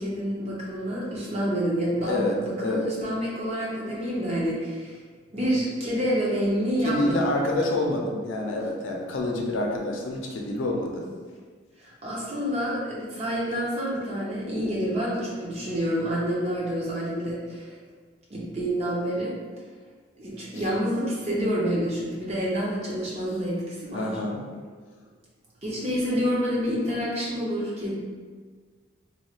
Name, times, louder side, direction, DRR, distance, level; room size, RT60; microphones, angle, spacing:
voice 1, 0.0-5.0 5.3-7.3 11.8-17.7 18.3-19.3 20.2-24.1 25.6-27.9, equal, 35° right, -6 dB, 0.7 m, -28 dB
voice 2, 2.0-2.3 2.6-2.8 6.8-11.1 23.9-24.4, left 2 dB, 90° left, 0 dB, 0.5 m, -27 dB
3.0 x 2.3 x 2.9 m, 1.6 s
head